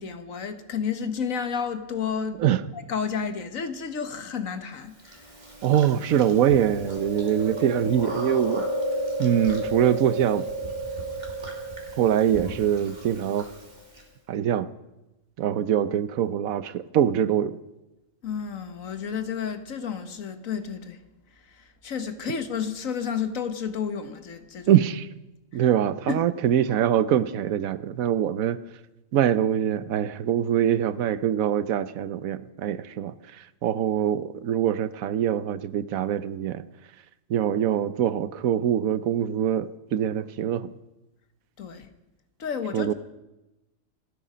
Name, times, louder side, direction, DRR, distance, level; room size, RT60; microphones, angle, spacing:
voice 1, 0.0-2.4 2.7-5.3 18.2-21.0 21.3-24.7 25.5-25.6 26.1-26.3 41.6-41.9 42.4-42.9, left 6 dB, 70° left, 1.7 m, -31 dB
Chewing mastication, 5.1-14.0, right 1 dB, 30° right, 2.7 m, -33 dB
voice 2, 5.6-8.7 9.2-10.5 12.0-13.5 14.3-14.7 15.4-17.6 24.7-25.1 25.5-28.6 29.1-36.6 37.3-40.7 42.7-42.9, right 10 dB, 80° right, 1.2 m, -24 dB
28.5 x 9.8 x 5.1 m
omnidirectional pair, 1.4 m